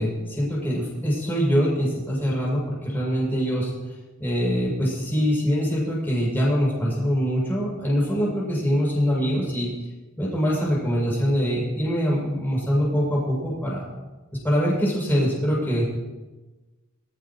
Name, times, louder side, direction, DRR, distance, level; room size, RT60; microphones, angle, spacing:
voice 1, 0.0-3.7 4.2-9.7 10.2-13.9 14.4-15.8, equal, 10° left, -6 dB, 7.4 m, -23 dB
25.5 x 15.5 x 3.2 m, 1.2 s
head